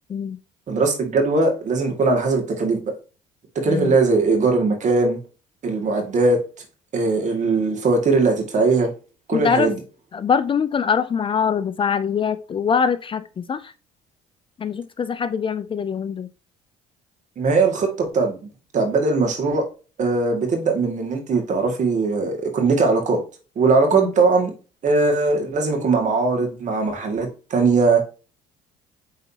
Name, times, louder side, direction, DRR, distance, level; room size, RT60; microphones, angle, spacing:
voice 1, 0.7-2.9 3.6-5.2 5.6-6.4 6.9-8.9 9.3-9.8 17.4-19.6 20.0-23.2 23.6-24.5 24.8-28.0, right 3 dB, 50° right, 2.1 m, -20 dB
voice 2, 9.3-9.7 10.1-13.7 14.6-16.3 23.9-24.1, left 6 dB, 30° left, 0.5 m, -23 dB
8.4 x 4.0 x 2.8 m
supercardioid pair, 75°, 16 cm